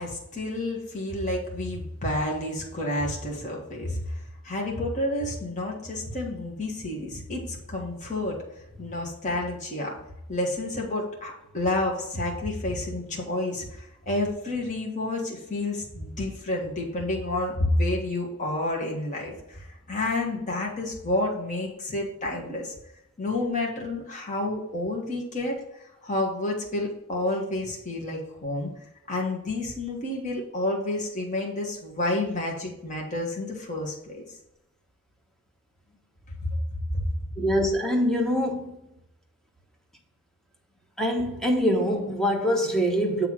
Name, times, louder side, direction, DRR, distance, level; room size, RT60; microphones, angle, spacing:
voice 1, 0.0-4.1 4.4-8.4 8.8-9.9 10.3-22.7 23.2-25.5 26.0-28.7 29.1-34.2 36.9-37.1, left 2 dB, 35° left, 1.6 m, -29 dB
voice 2, 37.4-38.8 41.0-43.3, equal, ahead, 1.1 m, -24 dB
7.6 x 3.5 x 6.2 m
head